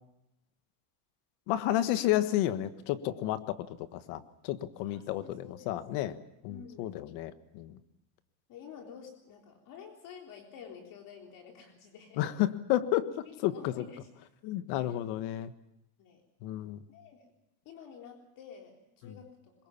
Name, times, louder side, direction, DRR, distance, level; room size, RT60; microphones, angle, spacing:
voice 1, 1.5-6.2 6.4-7.8 12.2-13.8 14.4-15.5 16.4-16.8 19.0-19.1, left 13 dB, 65° left, 12 dB, 1.6 m, -31 dB
voice 2, 4.8-5.8 6.5-7.0 8.5-12.2 13.3-14.1 14.8-14.9 16.0-16.2 16.9-17.2 17.7-19.5, left 7 dB, 50° left, 2 dB, 3.7 m, -50 dB
23.0 x 21.5 x 7.2 m, 0.89 s
cardioid pair, 145°, 42 cm